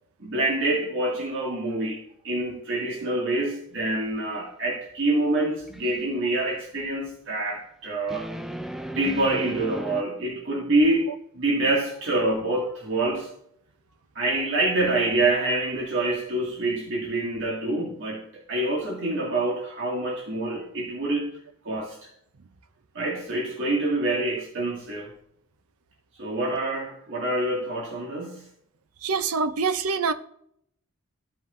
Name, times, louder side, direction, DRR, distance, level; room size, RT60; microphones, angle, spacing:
voice 1, 0.2-2.0 2.2-8.3 8.9-11.1 11.3-13.3 14.2-21.3 21.6-22.1 22.9-25.1 26.2-28.5, right 2 dB, 60° right, 2.1 m, -26 dB
sound 1, 5.6-6.0 8.1-10.0, right 1 dB, ahead, 0.4 m, -35 dB
voice 2, 29.0-30.1, right 5 dB, 90° right, 0.6 m, -25 dB
14.5 x 5.4 x 2.6 m
head